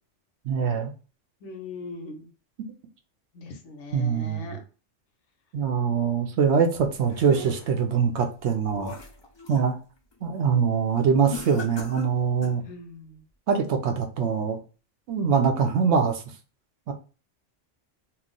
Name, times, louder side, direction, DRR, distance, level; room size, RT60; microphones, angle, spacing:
voice 1, 0.5-0.9 3.9-4.6 5.5-8.9 9.5-9.8 10.2-12.6 13.5-14.6 15.1-16.2 16.9-17.0, right 6 dB, 70° right, 0.8 m, -23 dB
voice 2, 1.4-2.3 3.3-4.6 12.7-13.2, left 3 dB, 70° left, 1.0 m, -40 dB
sound 1, 6.8-7.9 8.4-9.7 10.1-10.4 11.3-12.7, left 4 dB, 35° left, 0.4 m, -40 dB
2.9 x 2.0 x 3.7 m
omnidirectional pair, 1.3 m